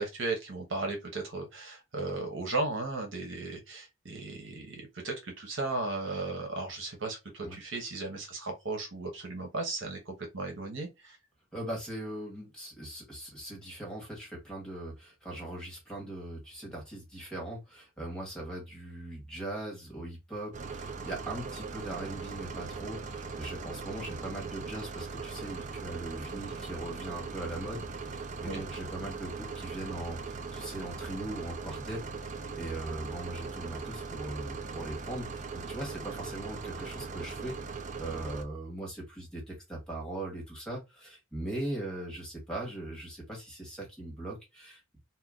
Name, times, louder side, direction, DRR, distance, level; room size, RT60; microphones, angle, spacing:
voice 1, 0.0-11.2 28.4-28.6, right 3 dB, 70° right, 1.1 m, -36 dB
voice 2, 11.5-44.8, right 1 dB, 5° left, 1.5 m, -40 dB
sound 1, 20.5-38.4, right 4 dB, 40° right, 0.4 m, -40 dB
2.8 x 2.3 x 3.6 m
head